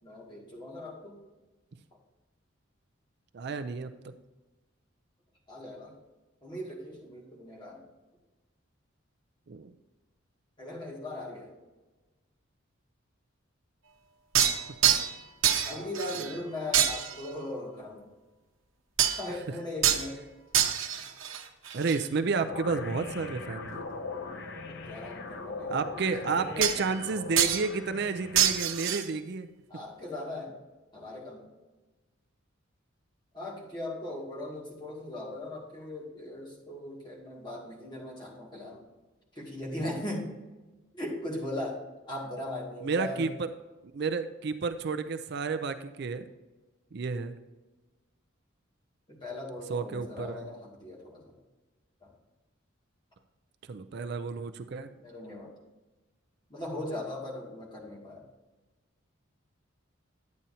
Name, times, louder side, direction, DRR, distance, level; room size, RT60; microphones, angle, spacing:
voice 1, 0.0-1.2 5.5-5.9 6.4-7.8 10.6-11.5 15.6-18.1 19.1-20.2 24.6-26.8 29.7-30.6 30.9-31.5 33.3-38.8 39.4-40.3 40.9-41.8 42.1-43.3 49.1-51.3 52.0-52.1 55.0-55.5 56.5-58.2, left 1 dB, 20° left, -4 dB, 2.2 m, -39 dB
voice 2, 3.3-4.1 9.5-9.7 15.7-16.5 21.7-23.8 25.7-29.5 42.8-43.5 43.9-46.2 46.9-47.4 49.7-50.5 53.7-54.9, right 4 dB, 55° right, 9 dB, 0.4 m, -31 dB
sound 1, 14.3-15.2 15.4-16.4 16.7-17.3 19.0-19.3 19.8-20.1 20.5-22.0 26.6-27.1 27.4-27.7 28.3-29.1, right 9 dB, 75° right, 1.0 m, -26 dB
sound 2, 22.5-29.0, left 3 dB, 55° left, 0.7 m, -40 dB
10.5 x 8.7 x 2.8 m, 1.2 s
head